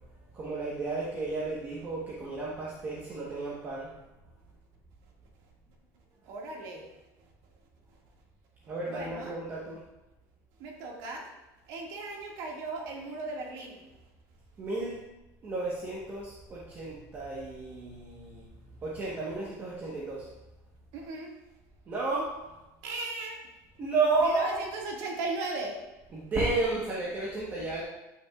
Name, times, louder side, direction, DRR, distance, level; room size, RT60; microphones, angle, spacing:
voice 1, 0.3-3.9 8.7-9.8 14.6-15.0 15.4-18.4 18.8-20.3 21.9-22.4 23.8-24.6 26.1-27.8, right 3 dB, 25° right, -6 dB, 1.2 m, -32 dB
voice 2, 6.2-6.8 8.8-9.3 10.6-11.3 11.7-13.8 20.9-21.4 22.8-23.4 24.2-25.8, right 3 dB, 55° right, -1 dB, 2.0 m, -37 dB
12.0 x 6.0 x 2.4 m, 1.0 s
cardioid pair, 170°, 8 cm